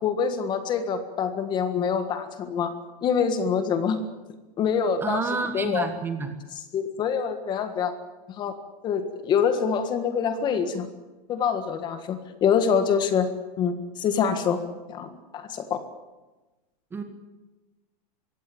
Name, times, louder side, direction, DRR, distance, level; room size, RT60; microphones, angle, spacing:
voice 1, 0.0-2.7 3.0-4.0 4.6-5.2 5.5-5.9 6.7-7.9 8.4-8.5 8.8-10.9 11.3-13.3 13.6-14.6 14.9-15.8, left 7 dB, 20° left, 9 dB, 1.7 m, -25 dB
voice 2, 5.0-6.3 16.9-17.0, right 4 dB, 10° right, 7 dB, 1.5 m, -29 dB
23.0 x 16.5 x 8.8 m, 1.1 s
supercardioid pair, 165°, 21 cm